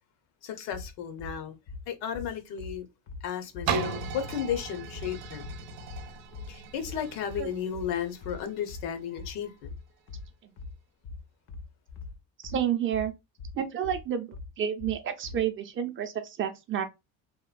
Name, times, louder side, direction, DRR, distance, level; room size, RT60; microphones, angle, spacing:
voice 1, 0.4-1.6 1.9-2.9 3.2-5.5 6.5-9.7, left 8 dB, 85° left, 0.7 m, -34 dB
sound 1, 0.7-15.5, left 4 dB, 40° left, 0.4 m, -42 dB
sound 2, 3.7-9.4 10.0-10.1, right 5 dB, 80° right, 0.6 m, -37 dB
voice 2, 12.4-13.1 13.5-14.3 14.6-16.8, right 9 dB, 35° right, 0.4 m, -30 dB
2.9 x 2.2 x 2.4 m
cardioid pair, 135°, 36 cm